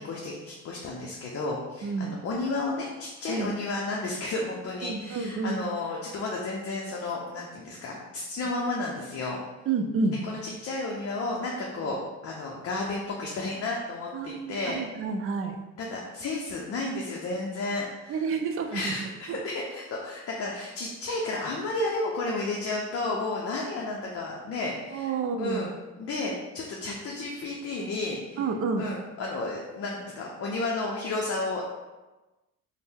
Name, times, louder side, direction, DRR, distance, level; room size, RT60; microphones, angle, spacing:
voice 1, 0.0-9.4 10.2-14.8 15.8-18.2 18.7-25.1 25.4-25.7 26.0-28.4 28.8-31.6, left 2 dB, 50° left, -2 dB, 0.5 m, -32 dB
voice 2, 1.8-2.2 3.3-3.5 4.8-5.6 9.7-10.2 14.1-15.5 18.1-18.9 19.3-19.4 24.9-25.7 28.4-28.8, right 4 dB, 45° right, 3 dB, 0.4 m, -29 dB
2.6 x 2.0 x 3.5 m, 1.1 s
cardioid pair, 90°, 30 cm